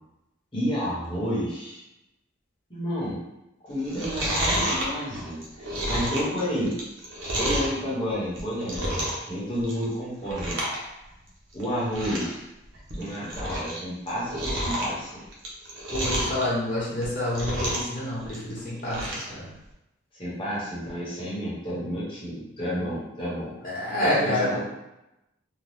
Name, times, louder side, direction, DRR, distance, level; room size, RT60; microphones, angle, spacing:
voice 1, 0.5-1.8 2.7-3.2 3.6-6.8 7.3-10.6 11.5-12.4 12.9-15.2 20.2-23.6 24.0-24.6, equal, 25° left, -8 dB, 1.0 m, -30 dB
Chewing mastication, 3.8-7.8 8.2-9.3 9.6-9.9 10.2-10.8 11.1-11.2 11.6-11.7 11.9-12.3 12.7-13.8 14.1-16.4 16.9-18.0 18.2-19.3 19.7-19.8, right 1 dB, 75° right, 0.8 m, -29 dB
voice 2, 15.9-19.5 23.6-24.6, left 1 dB, 45° left, -8 dB, 1.0 m, -28 dB
2.7 x 2.2 x 3.4 m, 0.91 s
head